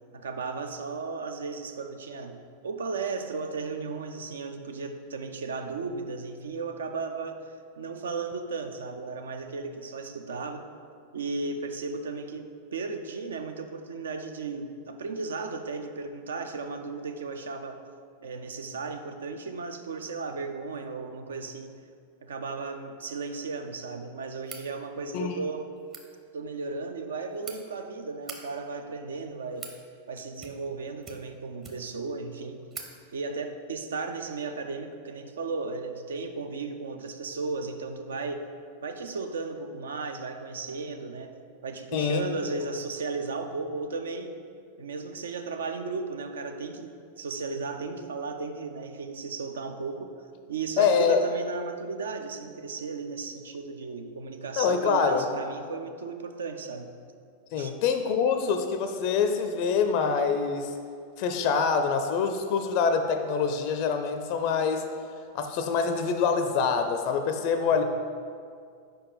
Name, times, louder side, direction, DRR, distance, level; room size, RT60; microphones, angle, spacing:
voice 1, 0.1-2.4 2.6-10.7 11.1-17.8 18.2-21.8 22.2-25.7 26.3-29.7 30.1-32.6 33.1-38.5 38.8-41.3 41.6-44.4 44.8-50.2 50.5-56.9 57.6-57.7 67.6-67.8, right 4 dB, 65° right, 7 dB, 0.4 m, -35 dB
sound 1, 24.4-24.7 25.8-26.0 27.0-27.6 28.1-28.4 29.2-29.8 30.3-30.7 31.0-32.0 32.3-32.4 32.7-32.9, right 4 dB, 25° right, 0.8 m, -43 dB
voice 2, 41.9-42.2 50.8-51.2 54.6-55.3 57.5-60.7 61.2-64.8 65.3-67.8, left 6 dB, 45° left, 7 dB, 0.4 m, -25 dB
5.1 x 4.4 x 5.5 m, 2.2 s
figure-of-eight pair, 90°, 0 cm